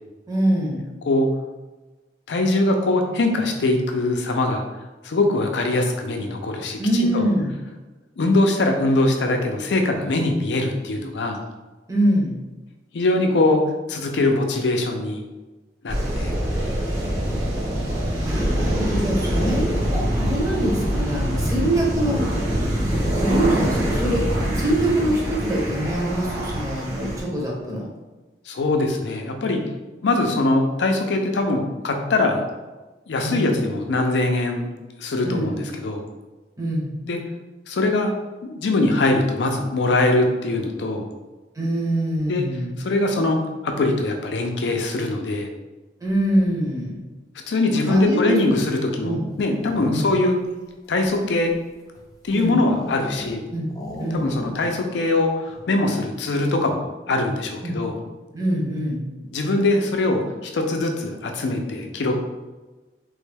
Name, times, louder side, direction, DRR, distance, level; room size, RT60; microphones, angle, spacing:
voice 1, 0.3-0.8 6.8-7.5 11.9-12.4 18.2-22.3 23.2-27.9 33.2-33.6 35.2-35.6 36.6-36.9 41.6-42.8 46.0-47.0 47.9-48.4 49.0-49.2 49.8-50.1 52.3-52.6 53.5-53.7 54.0-54.3 57.6-57.8 58.3-59.0, right 1 dB, 20° right, -3 dB, 0.7 m, -24 dB
voice 2, 2.3-4.6 5.0-7.3 8.2-11.4 12.9-13.6 13.9-15.2 15.8-16.3 21.1-21.5 28.5-29.7 30.0-32.4 33.1-34.7 35.0-36.0 37.1-37.2 37.7-38.1 38.4-41.1 42.3-42.4 42.8-45.5 47.5-50.4 50.9-51.5 52.2-53.4 54.1-57.9 59.3-62.1, left 2 dB, 80° left, 4 dB, 0.5 m, -22 dB
sound 1, 15.9-27.2, equal, 85° right, 1.3 m, -24 dB
sound 2, 49.2-50.2 50.8-53.4 53.7-54.8 55.0-55.1 55.4-55.8, left 1 dB, 20° left, 0.4 m, -38 dB
3.3 x 2.2 x 3.3 m, 1.2 s
head